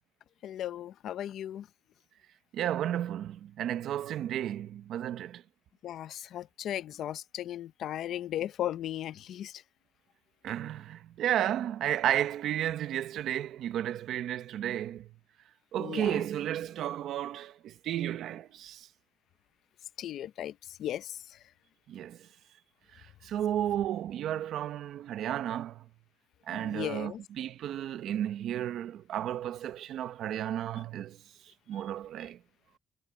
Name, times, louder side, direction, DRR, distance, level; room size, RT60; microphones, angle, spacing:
voice 1, 0.4-1.7 5.8-9.6 15.8-16.2 20.0-21.4 26.5-27.2, left 12 dB, 75° left, 0.6 m, -36 dB
voice 2, 2.5-5.4 10.4-15.1 15.7-18.9 21.9-22.3 22.9-25.9 26.5-31.2 31.7-32.4, right 11 dB, 80° right, 1.0 m, -33 dB
cardioid pair, 130°, 0 cm